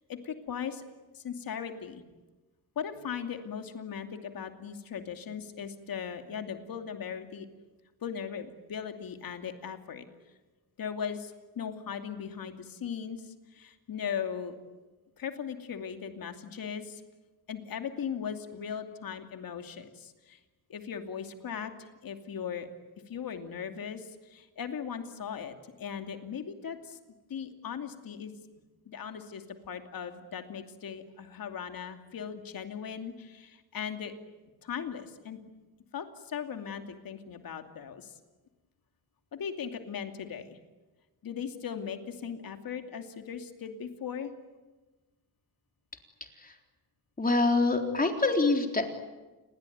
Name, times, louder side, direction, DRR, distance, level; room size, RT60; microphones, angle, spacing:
voice 1, 0.1-0.8 1.1-2.0 2.8-7.5 8.0-10.1 10.8-14.6 15.2-17.0 17.5-20.4 20.7-22.7 23.1-27.0 27.3-28.3 28.9-34.1 34.6-35.4 35.9-38.2 39.3-40.6 41.2-44.3, left 7 dB, 65° left, 6 dB, 2.7 m, -38 dB
voice 2, 47.2-48.9, left 3 dB, 20° left, 4 dB, 3.8 m, -25 dB
28.5 x 21.0 x 9.4 m, 1.2 s
cardioid pair, 110°, 38 cm